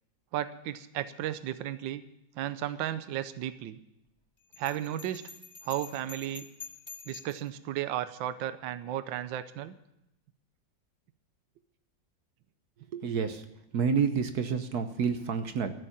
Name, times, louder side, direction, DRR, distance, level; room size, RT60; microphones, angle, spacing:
voice 1, 0.3-2.0 2.4-3.8 4.6-5.2 5.6-6.4 7.1-9.7, right 12 dB, 75° right, 12 dB, 1.4 m, -34 dB
Bell, 4.5-7.5, left 6 dB, 15° left, 3.0 m, -47 dB
voice 2, 12.9-13.4 13.7-15.7, right 6 dB, 60° right, 8 dB, 1.3 m, -29 dB
14.0 x 6.9 x 9.9 m, 0.85 s
omnidirectional pair, 2.1 m